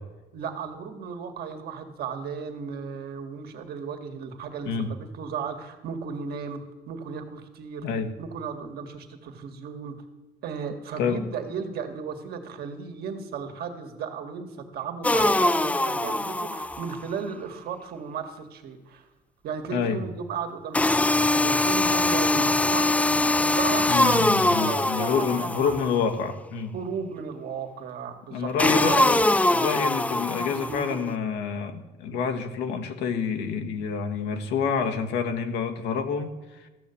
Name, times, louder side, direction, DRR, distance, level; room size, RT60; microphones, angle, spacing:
voice 1, 0.3-6.6 6.9-7.9 8.2-10.0 10.4-19.1 19.4-25.8 26.7-29.1 30.6-30.9, right 6 dB, 70° right, 5 dB, 1.9 m, -35 dB
sound 1, 15.0-17.0 20.7-26.0 28.6-31.0, left 2 dB, 10° left, 0.4 m, -23 dB
voice 2, 19.7-20.0 23.9-26.7 28.3-29.2 29.5-36.7, left 6 dB, 90° left, 6 dB, 1.5 m, -28 dB
14.0 x 6.8 x 8.5 m, 1.2 s
cardioid pair, 110°, 17 cm